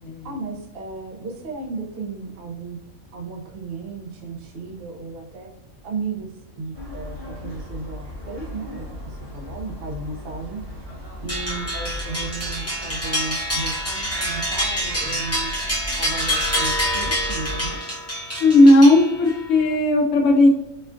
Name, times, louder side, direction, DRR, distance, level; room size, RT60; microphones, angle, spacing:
voice 1, 0.2-2.8 3.1-5.5 5.8-10.6 11.2-15.5 16.0-18.0, right 3 dB, 60° right, 0 dB, 0.7 m, -34 dB
sound 1, 6.7-17.8, left 1 dB, 45° right, 1.2 m, -37 dB
sound 2, 11.3-19.5, equal, 15° left, 0.6 m, -26 dB
voice 2, 18.4-20.5, left 1 dB, 65° left, 2 dB, 0.7 m, -15 dB
4.3 x 2.3 x 2.4 m, 0.88 s
omnidirectional pair, 1.5 m